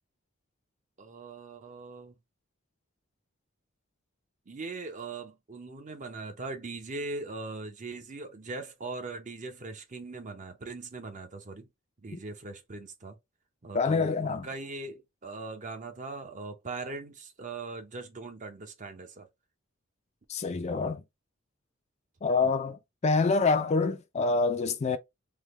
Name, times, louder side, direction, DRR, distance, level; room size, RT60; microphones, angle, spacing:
voice 1, 1.0-2.2 4.5-11.7 12.0-13.2 13.6-19.3 22.4-22.5, right 3 dB, 35° right, 0.7 m, -40 dB
voice 2, 13.7-14.5 20.3-21.0 22.2-25.0, left 4 dB, 30° left, 0.4 m, -26 dB
3.4 x 2.2 x 3.0 m
head